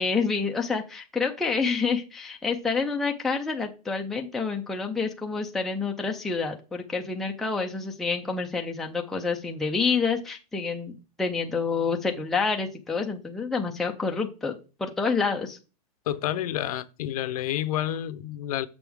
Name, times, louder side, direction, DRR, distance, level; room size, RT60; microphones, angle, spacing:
voice 1, 0.0-15.6, left 4 dB, ahead, 0.4 m, -28 dB
voice 2, 16.1-18.7, left 12 dB, 70° left, 0.7 m, -29 dB
6.8 x 6.2 x 3.5 m
supercardioid pair, 160°, 20 cm